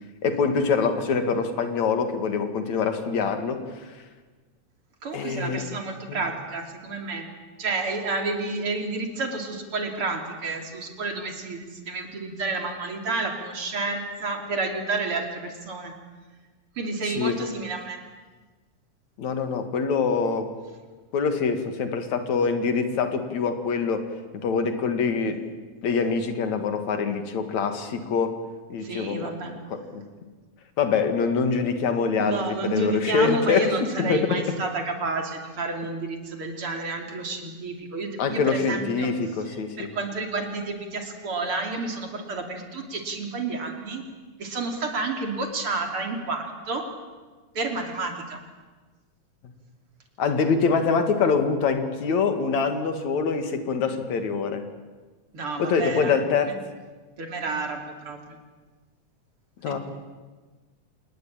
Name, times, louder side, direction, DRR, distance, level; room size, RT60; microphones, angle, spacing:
voice 1, 0.2-3.6 5.1-5.6 6.1-6.2 17.0-17.3 19.2-20.5 21.1-24.1 24.3-25.4 25.8-28.3 28.7-30.1 30.8-33.7 34.0-34.2 38.2-39.9 50.2-54.7 55.6-56.5 59.6-59.8, left 5 dB, 70° left, 7 dB, 3.4 m, -24 dB
voice 2, 5.0-7.3 7.6-15.9 16.8-18.0 28.8-29.5 32.2-39.1 39.8-44.0 44.4-46.8 47.6-48.4 55.3-56.6 57.2-58.4, right 3 dB, 45° right, 4 dB, 3.7 m, -30 dB
27.5 x 20.0 x 8.9 m, 1.3 s
omnidirectional pair, 3.4 m